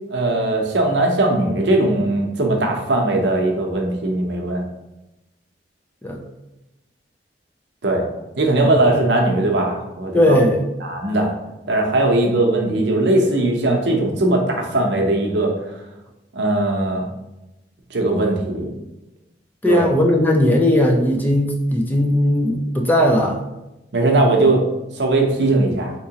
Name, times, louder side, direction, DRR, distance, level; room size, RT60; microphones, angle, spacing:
voice 1, 0.1-4.6 7.8-8.0 8.4-10.4 10.8-11.3 11.7-15.5 16.3-17.0 17.9-18.7 19.7-19.9 23.9-24.6 25.0-25.9, right 2 dB, 65° right, 1 dB, 0.7 m, -19 dB
voice 2, 10.1-10.6 19.6-23.4, left 1 dB, 10° left, 1 dB, 0.3 m, -17 dB
3.6 x 2.9 x 2.8 m, 0.97 s
head